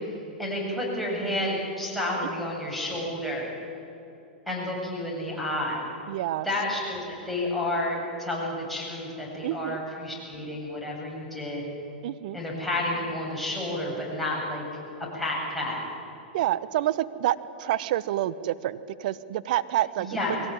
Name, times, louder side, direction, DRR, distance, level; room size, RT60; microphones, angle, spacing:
voice 1, 0.4-3.5 4.5-5.9 6.4-11.6 12.3-14.7 15.1-15.8 20.0-20.4, left 1 dB, ahead, -5 dB, 8.0 m, -30 dB
voice 2, 6.1-6.5 9.4-9.8 12.0-12.4 16.3-20.1, right 13 dB, 60° right, 15 dB, 1.0 m, -28 dB
22.0 x 18.0 x 9.9 m, 2.9 s
hypercardioid pair, 110°, 5 cm